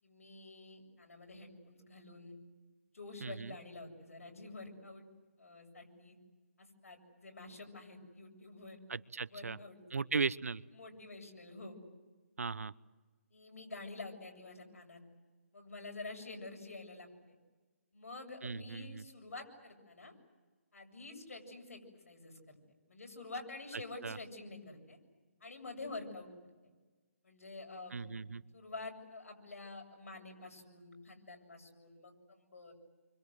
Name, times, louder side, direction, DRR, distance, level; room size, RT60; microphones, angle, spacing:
voice 1, 0.0-2.4 2.9-5.1 5.4-6.2 6.6-8.8 9.3-10.0 10.7-11.8 13.3-15.0 15.5-17.4 17.9-20.1 20.7-22.6 22.9-25.0 25.4-26.3 27.2-28.1 28.5-32.7, left 3 dB, 80° left, 3 dB, 7.4 m, -48 dB
voice 2, 3.2-3.5 8.9-9.6 9.9-10.6 12.4-12.7 18.4-19.0 24.0-24.2 27.9-28.4, right 5 dB, 85° right, 19 dB, 0.8 m, -37 dB
28.0 x 25.0 x 7.9 m, 1.3 s
hypercardioid pair, 150°, 8 cm